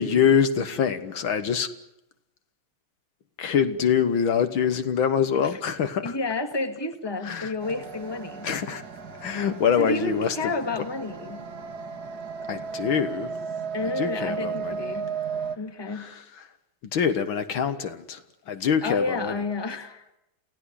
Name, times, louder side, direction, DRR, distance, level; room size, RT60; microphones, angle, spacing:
voice 1, 0.0-1.7 3.4-6.2 7.2-7.5 8.4-8.8 9.2-10.4 10.8-10.9 12.5-13.3 13.8-15.0 15.9-16.4 16.9-19.4, left 7 dB, 70° left, 10 dB, 2.0 m, -25 dB
voice 2, 6.0-8.5 9.8-11.5 13.7-15.1 15.6-16.1 18.8-20.2, left 2 dB, 10° left, 8 dB, 1.8 m, -30 dB
sound 1, 7.6-15.6, right 6 dB, 45° right, 2.3 m, -35 dB
28.5 x 16.5 x 9.9 m, 0.85 s
omnidirectional pair, 2.3 m